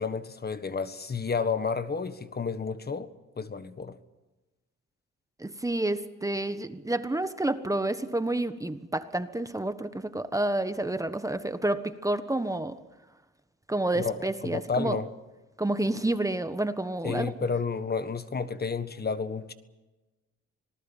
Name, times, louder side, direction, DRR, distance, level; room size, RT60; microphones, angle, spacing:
voice 1, 0.0-3.1 3.4-4.0 13.9-14.2 14.4-15.1 17.0-19.5, left 5 dB, 30° left, 12 dB, 1.5 m, -31 dB
voice 2, 5.4-12.8 13.7-15.0 15.6-17.3, right 1 dB, 10° right, 10 dB, 1.4 m, -29 dB
26.0 x 19.0 x 7.3 m, 1.1 s
cardioid pair, 90°, 30 cm